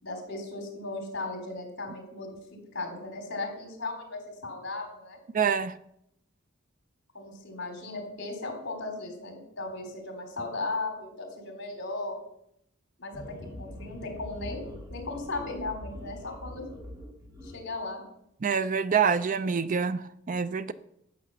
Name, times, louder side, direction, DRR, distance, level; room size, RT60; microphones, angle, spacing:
voice 1, 0.0-2.4 2.7-5.2 7.1-12.2 13.0-16.7 17.4-18.0, left 2 dB, 55° left, 3.9 m, -36 dB
voice 2, 5.3-5.7 18.4-20.7, right 6 dB, 40° right, 0.4 m, -26 dB
sound 1, 13.1-17.6, left 1 dB, 15° right, 2.2 m, -43 dB
12.0 x 8.8 x 7.0 m
head